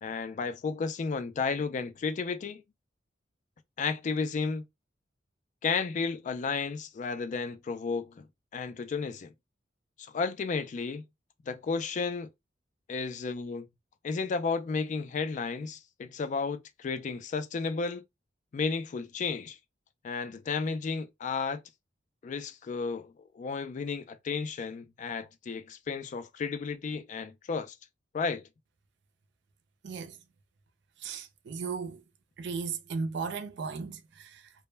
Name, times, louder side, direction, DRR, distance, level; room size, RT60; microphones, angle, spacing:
voice 1, 0.0-2.6 3.8-4.6 5.6-8.3 8.5-9.3 10.0-11.0 11.5-12.3 12.9-13.7 14.0-18.0 18.5-19.6 20.0-21.6 22.2-27.7 28.1-28.4, left 4 dB, 40° left, 0.3 m, -33 dB
voice 2, 29.8-30.2 31.0-32.0 32.4-34.5, right 5 dB, 65° right, 0.4 m, -36 dB
2.2 x 2.1 x 3.1 m
head